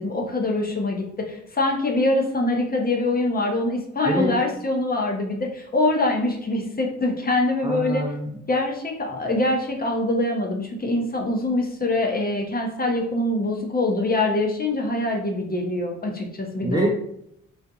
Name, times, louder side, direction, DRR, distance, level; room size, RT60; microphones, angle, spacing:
voice 1, 0.0-8.1 8.5-16.9, left 2 dB, 25° left, 1 dB, 0.7 m, -24 dB
voice 2, 7.6-8.4 16.6-16.9, right 1 dB, 10° right, -1 dB, 0.6 m, -25 dB
2.6 x 2.4 x 2.4 m, 0.72 s
hypercardioid pair, 45°, 34 cm